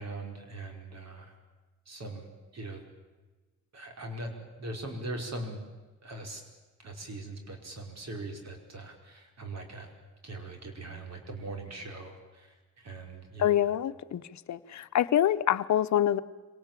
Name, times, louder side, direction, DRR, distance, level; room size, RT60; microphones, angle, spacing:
voice 1, 0.0-1.3 1.9-2.8 3.7-5.6 6.0-6.4 6.8-9.9 10.2-13.6, right 2 dB, 55° right, 3 dB, 5.1 m, -41 dB
voice 2, 13.4-14.2 14.5-16.2, left 11 dB, 65° left, 12 dB, 1.0 m, -25 dB
25.5 x 18.5 x 9.0 m, 1.3 s
cardioid pair, 70°, 31 cm